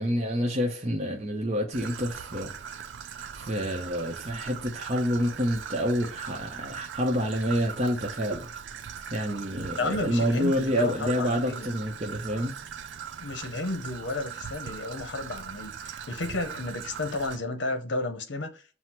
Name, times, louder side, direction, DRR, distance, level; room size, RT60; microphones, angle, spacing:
voice 1, 0.0-2.5 3.3-8.5 9.1-12.5, equal, 35° right, 0.6 m, -28 dB
Traffic noise roadway noise / Trickle dribble, 1.7-17.4, right 7 dB, 75° right, 0.4 m, -40 dB
voice 2, 9.8-11.7 13.2-18.8, left 3 dB, 75° left, 0.8 m, -32 dB
5.8 x 2.1 x 4.4 m
head